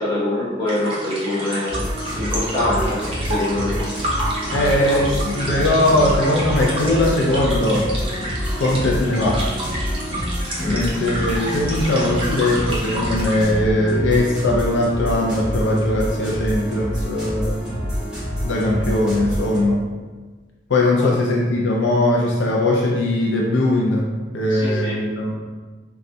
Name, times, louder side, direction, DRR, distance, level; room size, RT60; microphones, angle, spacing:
voice 1, 0.0-1.8 2.2-3.0 3.3-3.8 4.7-5.0 5.6-5.8 6.3-6.4 6.8-7.0 7.3-7.4 10.6-10.8 24.5-24.9, left 1 dB, 25° left, -9 dB, 0.9 m, -24 dB
sound 1, 0.7-13.4, right 1 dB, 30° right, 0.7 m, -30 dB
sound 2, 1.7-19.6, equal, 5° right, 1.2 m, -27 dB
voice 2, 4.5-7.9 8.6-9.4 10.7-17.6 18.4-19.8 20.7-25.4, left 1 dB, 85° left, -2 dB, 0.4 m, -20 dB
4.1 x 2.3 x 2.6 m, 1.3 s
head